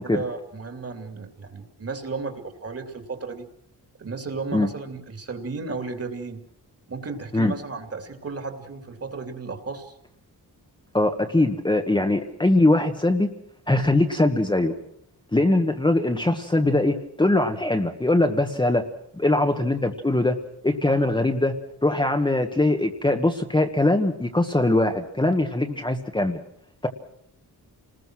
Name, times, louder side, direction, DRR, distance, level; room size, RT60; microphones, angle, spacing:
voice 1, 0.1-3.5 4.0-6.4 6.9-10.0, right 4 dB, 35° right, 7 dB, 2.9 m, -34 dB
voice 2, 10.9-13.3 13.7-14.7 15.3-18.9 19.2-20.4 20.6-21.6 21.8-26.4 26.8-26.9, left 2 dB, 10° left, 5 dB, 1.3 m, -21 dB
29.5 x 20.5 x 6.2 m, 0.70 s
wide cardioid pair, 160°, 39 cm